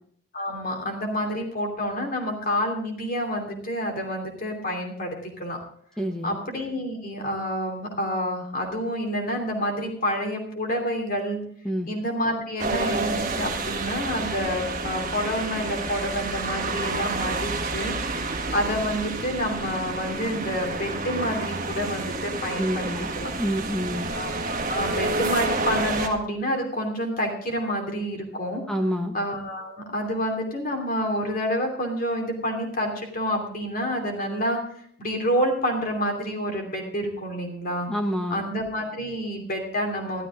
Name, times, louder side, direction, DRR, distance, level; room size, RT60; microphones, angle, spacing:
voice 1, 0.3-5.6 6.2-11.4 11.9-18.0 18.5-22.9 23.2-23.3 24.1-28.6 29.1-34.6 35.0-37.9 38.3-40.3, equal, 40° left, 3 dB, 2.9 m, -28 dB
voice 2, 6.0-6.4 11.6-11.9 22.6-23.1 23.4-24.0 28.7-29.1 37.9-38.4, equal, 5° left, 4 dB, 1.0 m, -27 dB
sound 1, 12.6-26.1, right 3 dB, 40° right, 1.6 m, -29 dB
14.0 x 12.5 x 3.7 m, 0.64 s
head